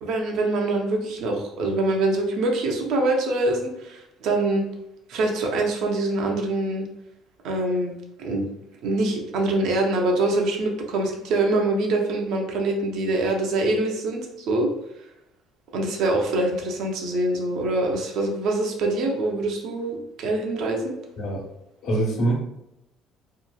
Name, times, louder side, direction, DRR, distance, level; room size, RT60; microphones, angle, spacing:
voice 1, 0.0-4.6 5.1-6.9 7.4-7.9 8.2-8.5 8.8-14.7 15.7-20.9, right 2 dB, 70° right, 1 dB, 0.6 m, -24 dB
voice 2, 21.8-22.4, right 2 dB, 75° left, -3 dB, 1.0 m, -23 dB
2.9 x 2.3 x 2.2 m, 0.86 s
supercardioid pair, 90°, 0 cm